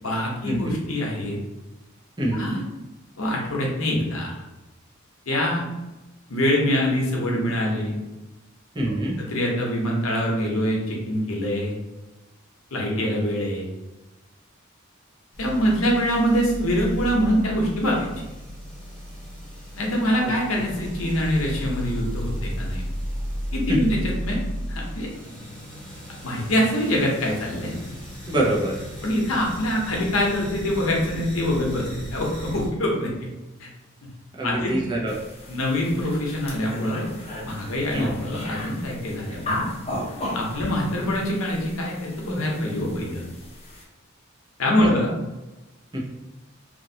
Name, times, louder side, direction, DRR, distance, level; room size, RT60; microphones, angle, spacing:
voice 1, 0.0-1.4 2.3-2.6 3.2-4.4 5.3-5.7 6.3-8.0 9.2-11.8 12.7-13.7 15.4-18.1 19.8-22.8 23.5-24.4 24.7-25.1 26.2-27.7 29.0-33.3 33.6-33.7 34.0-34.1 34.4-34.7 35.5-37.1 37.4-39.7 40.3-43.2 44.6-45.1, equal, 85° left, -1 dB, 0.8 m, -24 dB
voice 2, 2.2-2.6 8.7-9.2 23.7-23.8 28.3-28.7 34.4-35.1 37.9-38.1 44.8-44.9 45.9-46.0, right 1 dB, 20° right, -4 dB, 0.7 m, -24 dB
sound 1, 15.3-32.7, equal, 5° left, 1.1 m, -34 dB
sound 2, 35.1-43.8, left 1 dB, 30° left, 0.6 m, -36 dB
2.9 x 2.5 x 2.7 m, 1.1 s
head